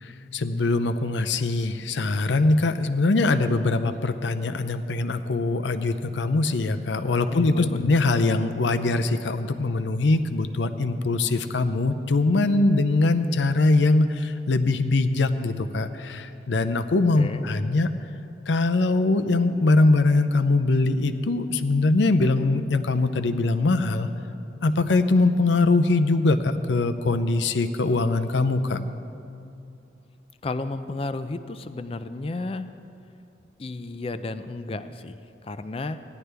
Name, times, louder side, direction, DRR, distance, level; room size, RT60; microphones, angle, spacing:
voice 1, 0.0-17.9 18.5-24.1 24.6-28.8, left 2 dB, 80° left, 9 dB, 0.6 m, -22 dB
voice 2, 7.3-7.8 17.2-17.4 30.4-32.7 33.6-36.0, left 2 dB, 30° left, 11 dB, 0.4 m, -33 dB
16.5 x 11.0 x 3.4 m, 2.7 s
head